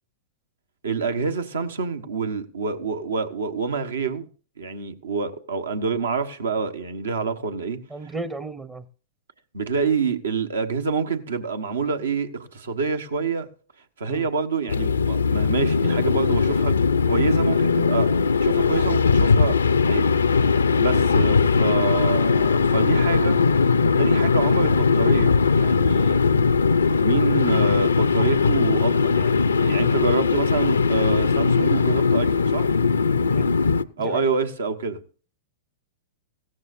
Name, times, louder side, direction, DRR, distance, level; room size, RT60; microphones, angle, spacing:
voice 1, 0.8-4.3 4.6-7.8 9.5-13.5 14.0-16.8 17.0-18.1 18.4-19.6 19.9-23.4 24.0-26.3 27.0-32.7 34.0-35.0, right 5 dB, 80° right, 1.2 m, -27 dB
voice 2, 7.9-8.9 14.1-14.3 33.3-33.6 34.0-34.3, right 3 dB, 20° right, 0.6 m, -34 dB
sound 1, 14.7-33.8, left 5 dB, 90° left, 0.5 m, -20 dB
16.5 x 14.0 x 2.6 m
hypercardioid pair, 115°, 0 cm